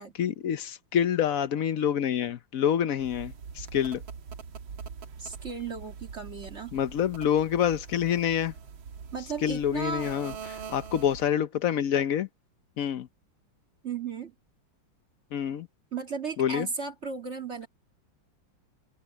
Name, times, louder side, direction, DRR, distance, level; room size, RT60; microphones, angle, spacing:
voice 1, 0.0-4.0 6.7-8.5 9.4-12.3 12.8-13.1 15.3-15.7 16.4-16.7, left 9 dB, 65° left, 0.9 m, -27 dB
sound 1, 3.0-11.4, right 6 dB, 85° right, 2.5 m, -43 dB
voice 2, 5.2-6.8 9.1-10.1 13.8-14.3 15.9-17.7, right 5 dB, 35° right, 2.5 m, -35 dB
omnidirectional pair, 2.1 m